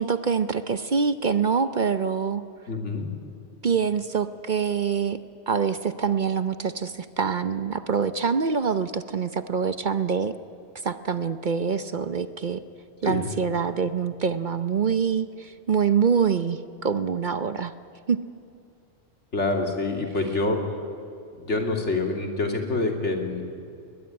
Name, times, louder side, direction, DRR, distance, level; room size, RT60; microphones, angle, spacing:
voice 1, 0.0-2.4 3.6-5.2 5.5-10.4 10.8-12.6 13.0-17.7 18.1-18.2, right 6 dB, 50° right, 12 dB, 0.8 m, -25 dB
voice 2, 2.7-3.1 13.0-13.3 19.3-20.6 21.4-23.4, left 3 dB, 75° left, 3 dB, 3.0 m, -26 dB
21.0 x 20.5 x 9.5 m, 2.6 s
omnidirectional pair, 1.2 m